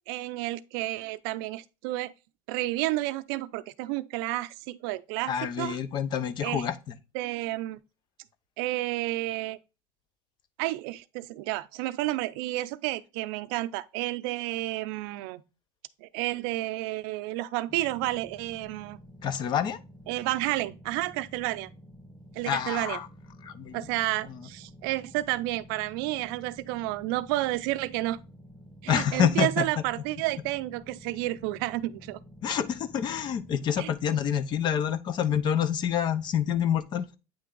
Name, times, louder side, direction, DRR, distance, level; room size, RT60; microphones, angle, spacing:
voice 1, 0.1-2.1 2.5-5.8 6.4-6.6 7.1-7.8 8.6-9.6 10.6-15.4 16.0-19.0 20.1-21.7 22.3-23.0 23.7-28.2 28.8-32.2 33.8-33.9, right 17 dB, 85° right, 0.5 m, -31 dB
voice 2, 5.3-7.0 19.2-19.8 22.4-23.1 23.4-23.9 28.9-29.8 32.4-37.1, left 8 dB, 40° left, 0.6 m, -27 dB
sound 1, 17.7-33.7, equal, 5° left, 1.4 m, -50 dB
8.7 x 3.3 x 3.8 m
cardioid pair, 140°, 12 cm